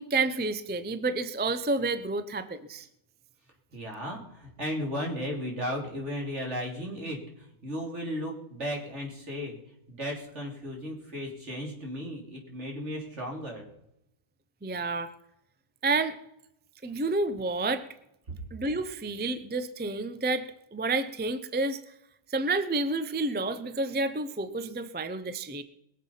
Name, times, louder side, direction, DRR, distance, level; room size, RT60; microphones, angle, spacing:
voice 1, 0.0-2.9 14.6-15.1 15.8-16.2 16.8-17.9 18.5-21.8 22.3-25.6, right 3 dB, 15° right, 11 dB, 0.3 m, -30 dB
voice 2, 3.7-9.6 9.9-13.7, equal, 50° right, 0 dB, 3.7 m, -35 dB
22.0 x 7.5 x 5.7 m, 0.79 s
omnidirectional pair, 1.6 m